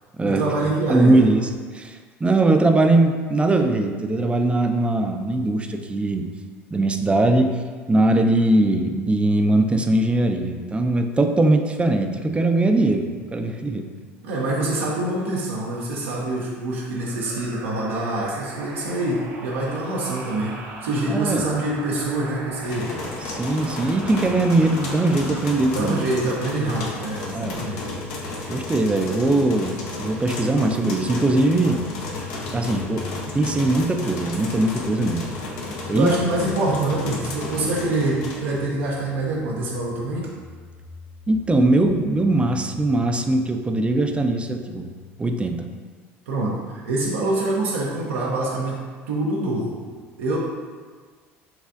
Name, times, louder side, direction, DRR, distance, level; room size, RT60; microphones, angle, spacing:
voice 1, 0.3-1.3 14.2-22.9 25.7-27.8 35.9-40.3 46.3-49.8 50.2-50.4, right 2 dB, 85° right, -4 dB, 0.6 m, -25 dB
voice 2, 0.9-6.3 6.7-7.6 7.9-13.9 21.1-21.5 23.3-26.0 27.3-27.7 28.5-31.9 32.5-35.3 35.9-36.1 41.3-44.9 45.2-45.7, right 2 dB, 15° right, 5 dB, 0.4 m, -21 dB
sound 1, 17.0-28.3, right 2 dB, 55° right, 0.9 m, -39 dB
sound 2, 22.6-38.6, left 2 dB, 75° left, 0.7 m, -33 dB
sound 3, 26.0-45.2, left 4 dB, 30° left, 0.6 m, -45 dB
5.7 x 2.4 x 2.6 m, 1.6 s
hypercardioid pair, 75°, 7 cm